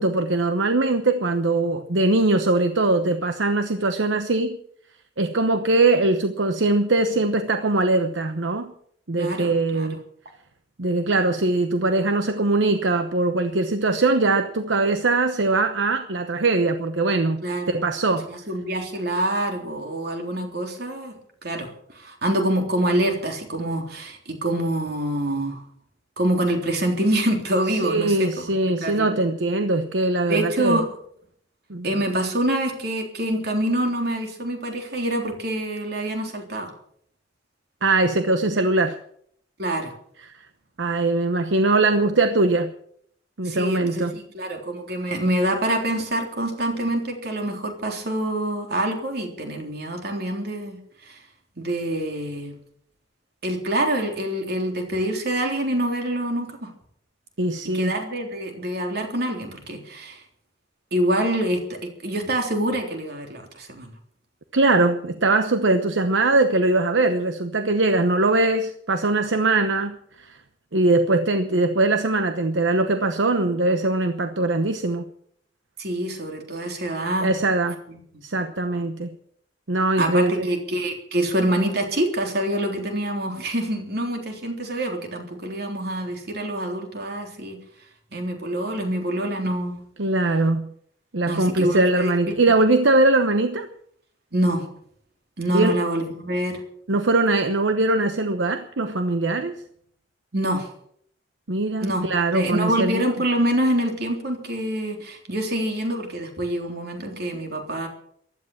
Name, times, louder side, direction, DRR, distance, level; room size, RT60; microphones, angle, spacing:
voice 1, 0.0-4.6 5.2-8.7 9.1-10.0 10.8-18.3 27.8-30.8 31.7-31.9 37.8-39.0 40.2-40.3 40.8-42.7 43.4-44.2 57.4-57.9 64.5-70.4 70.7-75.1 77.2-77.8 78.2-79.2 79.7-80.5 90.0-90.7 91.1-93.7 95.5-95.8 96.9-99.6 101.5-103.0, right 2 dB, 75° right, 9 dB, 1.0 m, -21 dB
voice 2, 9.2-9.9 17.4-17.8 18.3-21.1 21.4-25.6 26.2-29.2 30.3-30.9 31.8-36.7 39.6-39.9 43.4-50.8 51.1-51.2 51.6-52.6 53.4-56.7 57.6-60.2 60.9-63.9 75.8-77.3 77.9-78.0 80.0-87.6 88.1-89.7 91.3-92.1 94.3-94.7 95.4-96.6 100.3-100.7 101.8-102.1 102.3-107.9, right 1 dB, 55° right, 3 dB, 3.5 m, -26 dB
15.5 x 12.0 x 7.3 m, 0.66 s
head